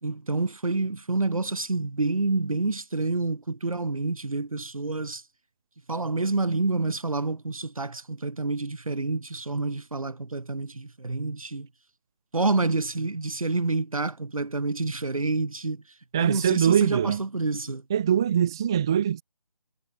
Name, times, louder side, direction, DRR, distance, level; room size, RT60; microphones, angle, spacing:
voice 1, 0.0-5.2 5.9-11.7 12.3-15.8 16.2-17.8, right 3 dB, 65° right, 3.0 m, -28 dB
voice 2, 16.1-17.2 17.9-19.2, right 9 dB, 5° right, 0.5 m, -22 dB
figure-of-eight pair, 150°, 19 cm